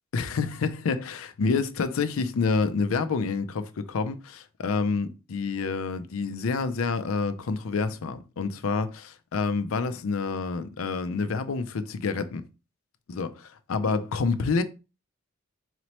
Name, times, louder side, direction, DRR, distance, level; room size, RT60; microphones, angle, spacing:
voice 1, 0.1-12.4 13.1-13.3 13.7-14.6, left 4 dB, 90° left, 0.5 m, -28 dB
4.0 x 3.0 x 2.9 m
head